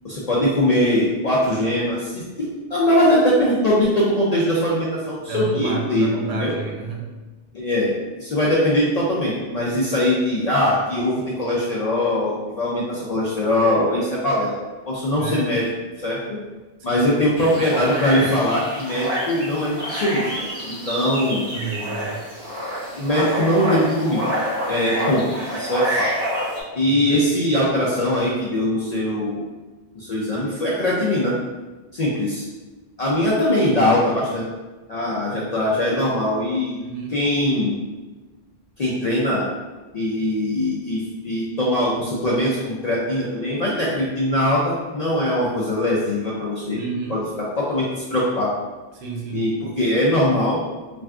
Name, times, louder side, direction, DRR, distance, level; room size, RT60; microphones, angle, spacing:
voice 1, 0.0-6.5 7.5-14.6 14.9-15.6 16.0-16.2 16.8-21.5 22.9-24.2 24.7-25.2 25.5-26.1 26.7-29.4 29.9-31.3 31.9-32.4 33.0-34.4 34.9-36.8 37.1-37.8 38.8-39.4 39.9-46.8 47.1-47.2 47.6-48.5 49.3-49.5 49.8-50.6, left 1 dB, 55° left, -6 dB, 0.4 m, -21 dB
voice 2, 5.3-7.1 15.2-15.5 16.8-17.1 21.5-22.2 26.8-27.2 36.8-37.1 46.7-47.2 48.9-49.5, right 5 dB, 75° right, -1 dB, 0.9 m, -30 dB
sound 1, 17.4-26.6, equal, 40° right, 0.7 m, -28 dB
2.4 x 2.2 x 3.5 m, 1.2 s
omnidirectional pair, 1.1 m